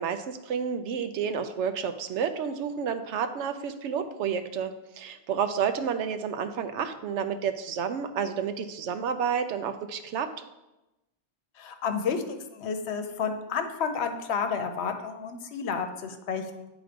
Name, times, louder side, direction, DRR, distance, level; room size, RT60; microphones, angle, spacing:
voice 1, 0.0-10.3, right 7 dB, 85° right, 9 dB, 0.9 m, -30 dB
voice 2, 11.6-16.7, left 6 dB, 75° left, 7 dB, 0.9 m, -31 dB
8.9 x 3.0 x 5.0 m, 0.97 s
omnidirectional pair, 1.1 m